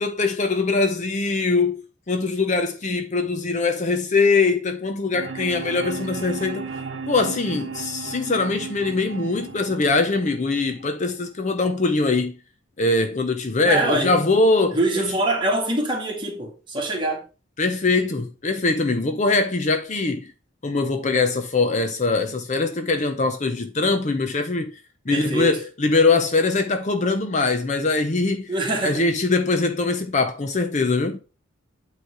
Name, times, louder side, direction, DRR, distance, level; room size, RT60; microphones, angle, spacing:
voice 1, 0.0-1.8 2.1-6.7 7.1-12.3 12.8-15.1 17.6-20.3 20.6-24.7 25.1-28.5 28.8-31.2, left 3 dB, 35° left, 0.6 m, -22 dB
sound 1, 5.1-11.1, right 4 dB, 60° right, 1.0 m, -35 dB
voice 2, 13.6-14.2 14.7-17.2 25.1-25.6 28.5-29.1, right 1 dB, 25° right, 1.7 m, -24 dB
9.0 x 3.3 x 4.7 m
head